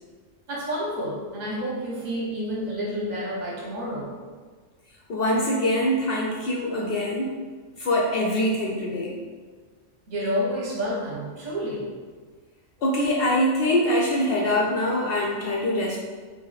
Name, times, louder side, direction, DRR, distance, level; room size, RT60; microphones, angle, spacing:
voice 1, 0.5-4.1 10.1-11.9, equal, 40° right, -4 dB, 0.8 m, -29 dB
voice 2, 5.1-7.4 7.8-9.2 12.8-16.0, left 1 dB, 65° left, -2 dB, 0.6 m, -24 dB
2.7 x 2.7 x 3.9 m, 1.5 s
omnidirectional pair, 1.4 m